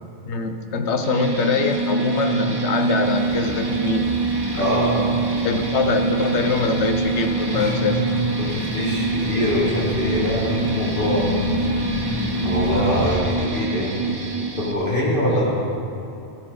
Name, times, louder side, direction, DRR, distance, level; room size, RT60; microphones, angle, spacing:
voice 1, 0.2-4.2 4.5-5.2 5.4-8.1 12.7-13.1, left 4 dB, 70° left, 6 dB, 1.2 m, -24 dB
sound 1, 1.0-14.7, right 3 dB, 20° right, 1.0 m, -25 dB
sound 2, 3.0-13.2, left 1 dB, 15° left, 1.9 m, -31 dB
voice 2, 4.6-5.0 7.5-8.0 8.4-11.4 12.4-15.5, equal, 45° left, -5 dB, 2.2 m, -24 dB
16.0 x 10.5 x 3.9 m, 2.6 s
omnidirectional pair, 1.2 m